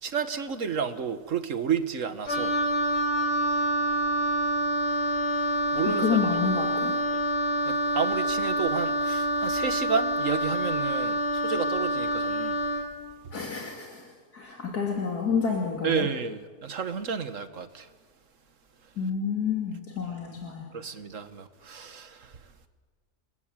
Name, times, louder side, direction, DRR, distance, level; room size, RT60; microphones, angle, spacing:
voice 1, 0.0-2.5 5.7-6.0 7.7-12.6 15.8-17.9 20.7-22.2, right 6 dB, 55° right, 1.8 m, -31 dB
Wind instrument woodwind instrument, 2.3-12.9, right 1 dB, 40° left, 3.6 m, -27 dB
voice 2, 3.5-4.2 5.9-7.0 13.3-14.0 14.3-16.1 19.0-20.7, left 6 dB, 80° left, 3.4 m, -29 dB
30.0 x 21.0 x 9.0 m
omnidirectional pair, 1.6 m